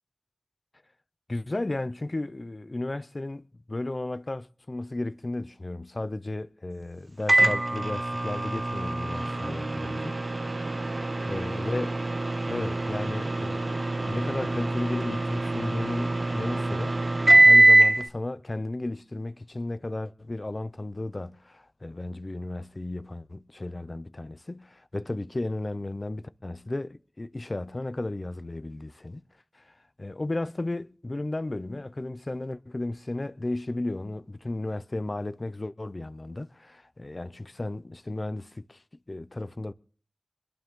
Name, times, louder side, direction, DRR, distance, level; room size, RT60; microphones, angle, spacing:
voice 1, 1.3-10.2 10.5-11.9 12.5-17.0 17.3-29.2 29.5-38.8 39.1-39.7, left 2 dB, 45° left, 0.7 m, -34 dB
Microwave oven, 7.3-18.0, right 2 dB, 55° right, 0.9 m, -23 dB
24.5 x 11.5 x 3.8 m
wide cardioid pair, 65°, 0 cm